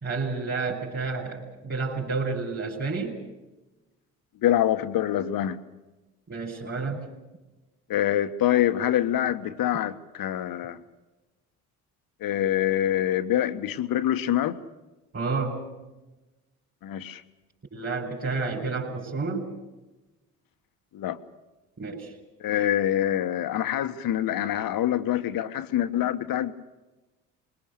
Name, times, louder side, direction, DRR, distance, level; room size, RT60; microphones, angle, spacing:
voice 1, 0.0-3.2 6.3-7.0 15.1-15.6 17.7-19.5 21.8-22.1, right 4 dB, 25° right, -3 dB, 5.2 m, -30 dB
voice 2, 4.4-5.6 7.9-10.8 12.2-14.6 16.8-17.2 20.9-21.2 22.4-26.5, left 12 dB, 50° left, 11 dB, 1.5 m, -25 dB
24.5 x 22.5 x 6.7 m, 1.1 s
figure-of-eight pair, 55°, 45 cm